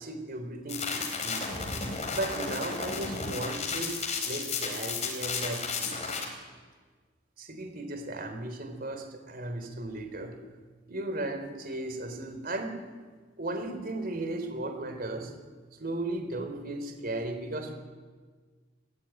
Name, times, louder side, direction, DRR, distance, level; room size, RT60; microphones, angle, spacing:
voice 1, 0.0-1.4 2.1-3.9 4.2-6.1 7.4-10.4 10.9-12.8 13.4-15.3 15.8-17.7, right 2 dB, 50° right, 6 dB, 3.9 m, -36 dB
sound 1, 0.7-6.2, left 4 dB, 35° left, 4.3 m, -33 dB
28.5 x 15.5 x 9.2 m, 1.5 s
head